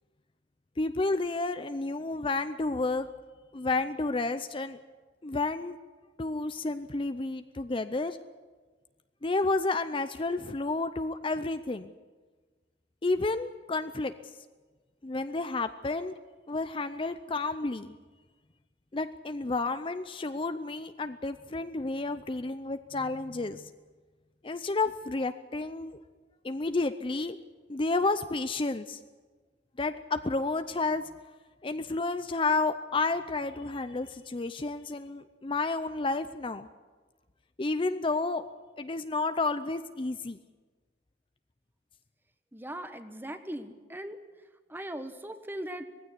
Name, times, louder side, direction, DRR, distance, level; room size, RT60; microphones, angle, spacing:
voice 1, 0.8-3.1 3.5-4.8 5.2-5.8 6.2-8.2 9.2-11.9 13.0-14.1 15.0-16.1 16.5-17.9 18.9-23.7 24.4-26.0 26.4-27.4 27.7-29.0 29.8-31.0 31.6-36.7 37.6-38.4 38.8-40.4, left 3 dB, 30° left, 10 dB, 0.6 m, -31 dB
voice 2, 42.5-44.2 44.7-45.8, right 1 dB, 10° right, 9 dB, 1.2 m, -39 dB
19.0 x 16.0 x 9.9 m, 1.4 s
head